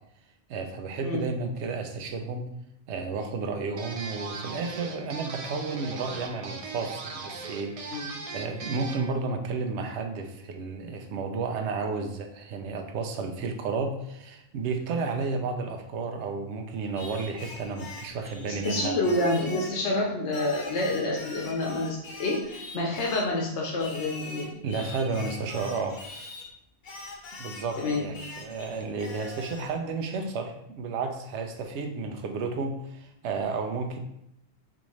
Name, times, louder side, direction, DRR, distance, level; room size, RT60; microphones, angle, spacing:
voice 1, 0.5-2.5 2.9-18.9 24.6-26.0 27.4-34.0, right 4 dB, 90° right, 5 dB, 0.9 m, -32 dB
sound 1, 3.8-9.1, right 4 dB, 50° right, 0.4 m, -39 dB
Singing, 17.0-19.8 20.3-23.3 23.8-26.5 26.8-29.7, left 3 dB, 55° left, 0.7 m, -43 dB
voice 2, 18.4-24.5 27.8-28.1, left 2 dB, 85° left, -1 dB, 1.0 m, -28 dB
4.6 x 2.6 x 3.0 m, 0.79 s
omnidirectional pair, 1.1 m